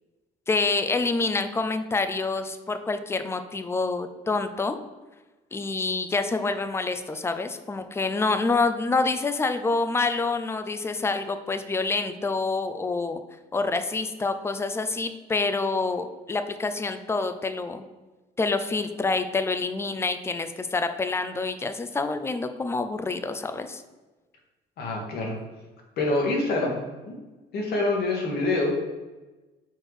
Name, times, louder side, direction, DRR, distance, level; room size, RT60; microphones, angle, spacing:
voice 1, 0.5-4.8 5.5-13.2 13.5-17.8 18.4-23.8, left 3 dB, 15° left, 8 dB, 0.5 m, -27 dB
voice 2, 24.8-25.4 26.0-27.1 27.5-28.7, left 2 dB, 70° left, 0 dB, 1.5 m, -26 dB
4.5 x 4.5 x 4.8 m, 1.2 s
cardioid pair, 110°, 17 cm